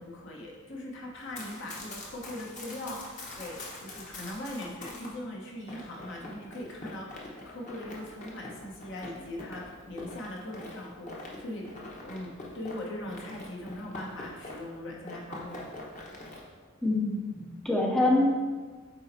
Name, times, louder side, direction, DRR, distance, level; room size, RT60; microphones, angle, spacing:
voice 1, 0.0-11.7 12.0-15.6, left 1 dB, 65° left, -1 dB, 1.1 m, -40 dB
Run, 1.2-5.1 5.7-14.8 15.1-16.4, left 2 dB, 40° left, 1.1 m, -44 dB
voice 2, 16.8-18.3, left 2 dB, ahead, -2 dB, 0.5 m, -25 dB
8.6 x 4.3 x 2.7 m, 1.4 s
head